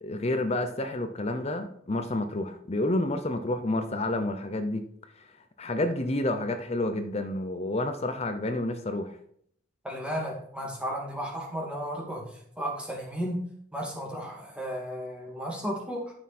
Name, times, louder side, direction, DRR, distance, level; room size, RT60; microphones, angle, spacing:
voice 1, 0.0-4.8 5.2-5.3 5.6-9.2, left 1 dB, 30° left, 8 dB, 0.7 m, -29 dB
voice 2, 9.8-12.2 12.6-13.4 13.7-16.1, equal, 5° right, -2 dB, 2.5 m, -34 dB
13.0 x 6.3 x 4.3 m, 0.66 s
head